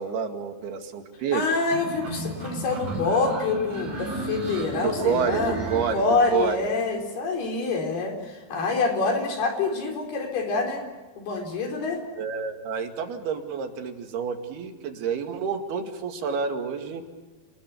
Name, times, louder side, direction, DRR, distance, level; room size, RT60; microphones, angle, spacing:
voice 1, 0.0-1.4 4.7-6.0 6.3-6.6 12.2-17.0, right 6 dB, 80° right, 5 dB, 4.1 m, -28 dB
voice 2, 1.3-10.8 11.2-12.0, left 3 dB, 75° left, 3 dB, 6.2 m, -26 dB
sound 1, 1.7-6.5, right 2 dB, 50° right, 7.3 m, -34 dB
28.0 x 20.5 x 8.3 m, 1.3 s
omnidirectional pair, 4.5 m